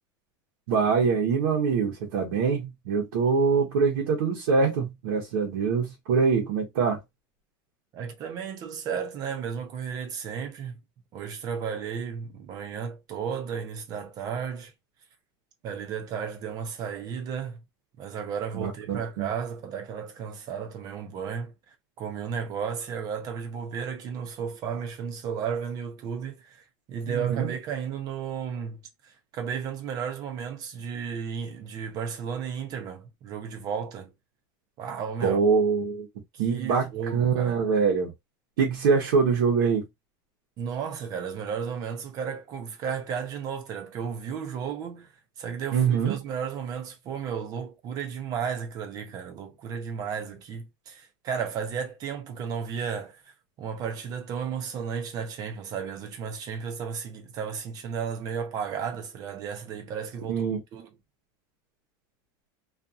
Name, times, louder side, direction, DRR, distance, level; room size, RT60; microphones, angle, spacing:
voice 1, 0.7-7.0 18.5-19.3 27.1-27.5 35.2-36.1 36.4-38.1 38.6-39.8 45.7-46.2 60.3-60.6, right 5 dB, 85° right, 1.0 m, -24 dB
voice 2, 7.9-10.8 11.1-14.7 15.6-17.6 18.0-34.1 34.8-35.4 36.4-37.7 40.6-45.1 45.4-60.5 60.7-60.9, right 7 dB, 35° right, 0.7 m, -34 dB
2.7 x 2.5 x 2.4 m
supercardioid pair, 165°, 11 cm